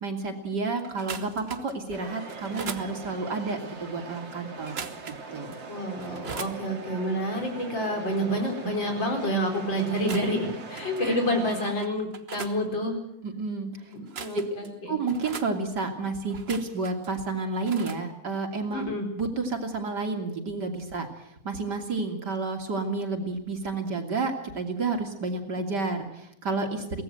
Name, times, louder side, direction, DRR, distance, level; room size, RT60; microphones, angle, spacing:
voice 1, 0.0-4.9 5.3-5.6 11.0-11.2 13.2-13.9 14.9-18.9 19.2-21.1 21.5-27.0, right 3 dB, 65° right, 4 dB, 3.4 m, -30 dB
sound 1, 0.8-1.8 2.3-2.9 4.6-5.3 5.5-5.6 6.0-6.6 9.8-10.4 10.7-11.0 11.5-12.6 13.9-14.7 15.1-15.5 16.3-17.1 17.7-18.0, right 5 dB, 40° right, 1.3 m, -40 dB
sound 2, 1.9-11.7, right 4 dB, 80° right, 3.2 m, -41 dB
voice 2, 5.7-10.4 10.7-13.0 13.9-14.7 18.7-19.1, equal, 90° left, 3 dB, 5.3 m, -28 dB
23.5 x 18.0 x 7.8 m, 0.78 s
omnidirectional pair, 2.0 m